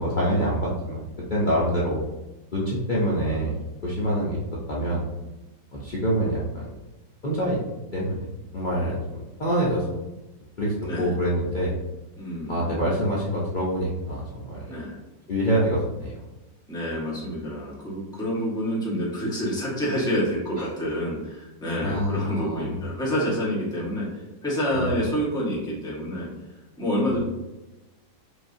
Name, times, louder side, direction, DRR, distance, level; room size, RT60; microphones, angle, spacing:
voice 1, 0.0-2.0 2.5-3.5 3.8-4.4 4.7-5.0 5.7-6.7 7.2-7.6 7.9-8.3 8.5-9.0 9.4-9.9 10.6-11.7 12.5-14.7 15.3-16.2 20.6-20.7 21.8-22.8 24.7-24.9 27.1-27.2, equal, 85° left, -7 dB, 0.4 m, -25 dB
voice 2, 12.2-12.7 14.7-14.9 16.7-24.1 24.4-26.3 26.8-27.2, equal, 5° left, -7 dB, 1.0 m, -28 dB
5.0 x 2.9 x 2.7 m, 1.0 s
omnidirectional pair, 1.9 m